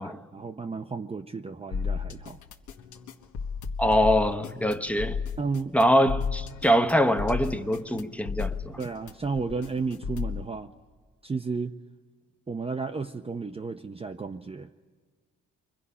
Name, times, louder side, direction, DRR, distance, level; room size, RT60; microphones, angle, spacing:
voice 1, 0.0-2.4 5.4-5.8 8.8-10.7 11.2-11.8 12.5-14.7, right 4 dB, 20° right, 0.7 m, -33 dB
sound 1, 1.7-10.4, left 6 dB, 80° left, 1.4 m, -33 dB
voice 2, 3.8-5.2 5.7-8.8, equal, 5° left, 1.0 m, -23 dB
29.0 x 24.0 x 5.6 m
cardioid pair, 90°, 30 cm